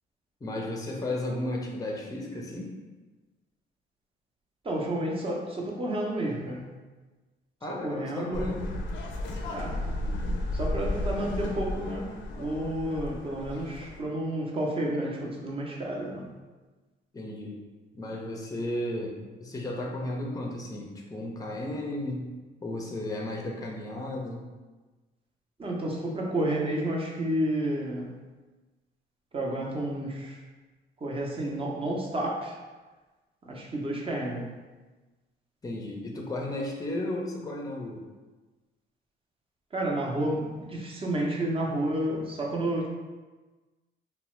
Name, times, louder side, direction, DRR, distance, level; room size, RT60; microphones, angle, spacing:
voice 1, 0.4-2.7 7.6-8.7 17.1-17.6 17.9-22.3 22.6-24.4 35.6-38.0, left 1 dB, 20° left, 0 dB, 0.5 m, -34 dB
voice 2, 4.6-6.7 7.7-8.6 9.5-9.8 10.5-16.3 25.6-28.1 29.3-30.4 31.0-32.6 33.4-34.5 39.7-42.9, right 1 dB, 30° right, -2 dB, 0.6 m, -31 dB
sound 1, 8.3-14.0, left 1 dB, 75° left, 0.4 m, -33 dB
2.9 x 2.1 x 3.0 m, 1.3 s
cardioid pair, 90°, 20 cm